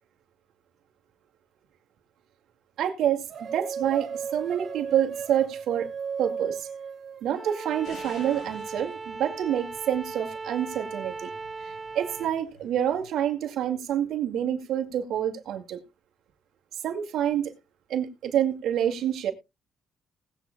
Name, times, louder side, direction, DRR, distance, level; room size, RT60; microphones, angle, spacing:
voice 1, 2.8-5.9 6.2-6.7 7.2-11.3 11.6-15.8 16.8-17.5 17.9-19.3, right 10 dB, 75° right, 2.1 m, -27 dB
sound 1, 3.3-7.8, right 6 dB, 60° right, 2.4 m, -35 dB
Bowed string instrument, 7.3-12.4, right 4 dB, 25° right, 0.8 m, -38 dB
sound 2, 7.8-13.1, left 4 dB, 75° left, 6.0 m, -52 dB
19.5 x 8.3 x 2.3 m
cardioid pair, 90°, 0 cm